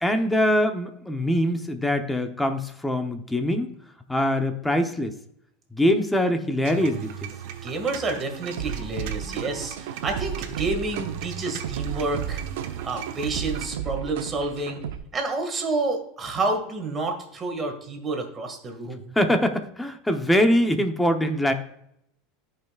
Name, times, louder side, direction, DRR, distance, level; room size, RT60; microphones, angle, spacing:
voice 1, 0.0-3.7 4.1-5.1 5.7-7.3 19.2-21.5, equal, 5° left, 6 dB, 0.8 m, -23 dB
sound 1, 6.6-13.7, right 9 dB, 65° right, 1.1 m, -38 dB
voice 2, 7.6-12.4 12.8-14.8 15.1-19.1, right 3 dB, 20° right, 4 dB, 1.9 m, -29 dB
sound 2, 8.6-15.0, right 10 dB, 90° right, 0.7 m, -33 dB
14.0 x 5.6 x 2.4 m, 0.75 s
supercardioid pair, 145°, 0 cm